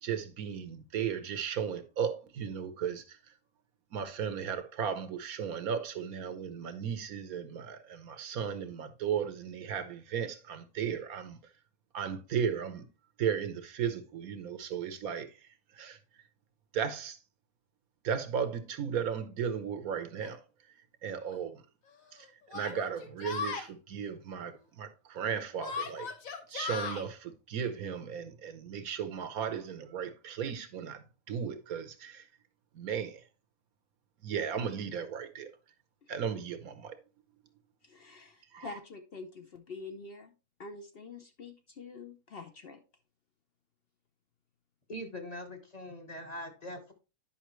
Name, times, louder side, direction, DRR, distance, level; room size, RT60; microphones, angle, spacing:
voice 1, 0.0-3.2 3.9-11.4 11.9-12.9 13.2-16.0 16.7-17.2 18.0-20.4 21.0-21.6 22.1-26.1 26.5-32.2 32.7-33.2 34.2-35.5 36.1-37.0 38.5-38.7, right 7 dB, 85° right, 1.4 m, -35 dB
Yell, 20.2-20.3 21.3-21.4 22.5-23.7 25.6-27.0, left 5 dB, 70° left, 1.5 m, -37 dB
voice 2, 37.8-40.3 40.6-42.8, left 4 dB, 55° left, 0.8 m, -46 dB
voice 3, 44.9-46.9, equal, 30° left, 1.2 m, -42 dB
10.0 x 5.4 x 3.1 m
omnidirectional pair, 1.5 m